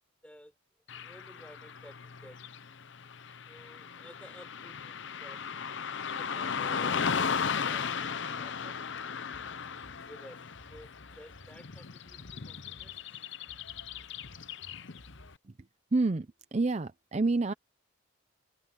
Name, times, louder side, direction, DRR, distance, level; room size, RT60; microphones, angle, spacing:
voice 1, 0.2-0.5 1.0-2.4 3.5-5.8 6.2-8.9 10.0-10.4 10.7-13.0, equal, 5° left, 4.4 m, -54 dB
Car passing by / Traffic noise roadway noise, 0.9-15.2, left 6 dB, 60° left, 0.7 m, -36 dB
sound 1, 9.3-15.4, left 1 dB, 75° left, 5.6 m, -55 dB
voice 2, 15.9-17.5, right 3 dB, 30° right, 0.5 m, -28 dB
head